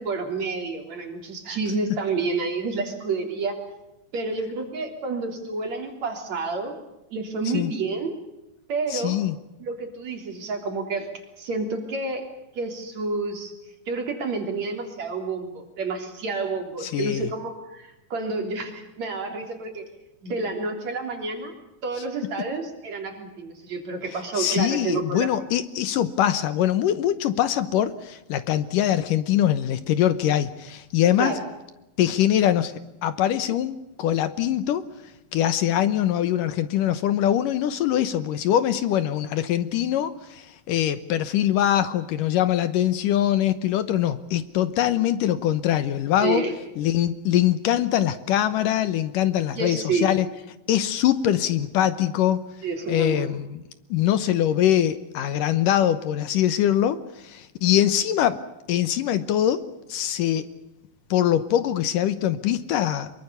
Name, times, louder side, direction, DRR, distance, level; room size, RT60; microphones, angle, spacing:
voice 1, 0.0-3.6 4.1-6.8 7.1-8.1 8.7-9.2 9.6-11.1 11.4-12.3 12.5-13.5 13.9-19.9 20.2-21.5 21.8-25.3 31.2-31.4 46.2-46.5 49.5-50.2 52.6-53.3, right 3 dB, 50° right, 4 dB, 4.6 m, -29 dB
voice 2, 8.9-9.4 16.8-17.3 24.3-31.3 32.0-34.8 35.3-46.4 46.8-50.3 50.7-52.4 52.9-53.6 53.9-58.4 58.7-59.6 59.9-60.4 61.1-63.1, left 11 dB, 75° left, 14 dB, 2.5 m, -23 dB
24.5 x 23.5 x 6.9 m, 0.93 s
omnidirectional pair, 4.2 m